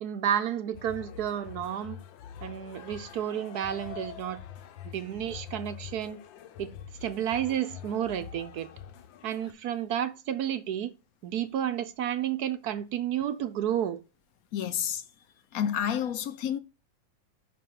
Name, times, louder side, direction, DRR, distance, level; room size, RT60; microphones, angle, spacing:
voice 1, 0.0-2.0 2.4-4.4 4.9-6.2 6.6-6.7 7.0-8.7 9.2-10.9 11.2-14.0, right 10 dB, 65° right, 1.1 m, -31 dB
sound 1, 0.7-9.5, left 9 dB, 90° left, 1.5 m, -45 dB
voice 2, 14.5-15.0 15.5-16.6, left 9 dB, 65° left, 0.9 m, -29 dB
5.9 x 4.6 x 6.5 m
omnidirectional pair, 2.0 m